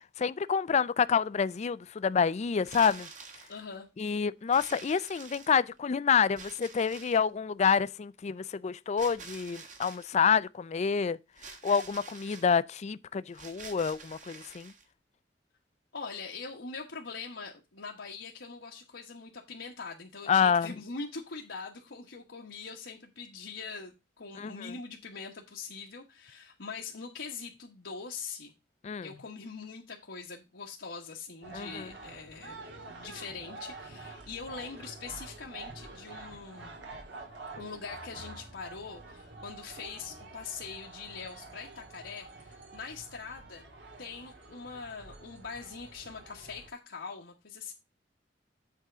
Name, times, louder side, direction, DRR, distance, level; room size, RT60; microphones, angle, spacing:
voice 1, 0.2-3.1 4.0-11.2 11.6-14.7 20.3-20.7 24.4-24.7 28.8-29.1 31.5-31.9, left 6 dB, 40° left, 0.4 m, -28 dB
sound 1, 2.6-3.6 4.5-5.8 6.4-7.3 9.0-10.1 11.4-12.5 13.3-14.8, right 5 dB, 45° right, 1.6 m, -47 dB
voice 2, 3.5-3.9 15.9-28.5 29.0-32.6 32.9-36.7 37.6-43.6 44.0-47.7, left 5 dB, 85° left, 1.2 m, -43 dB
sound 2, 31.4-46.7, right 3 dB, 80° right, 2.2 m, -47 dB
8.3 x 3.7 x 6.6 m
head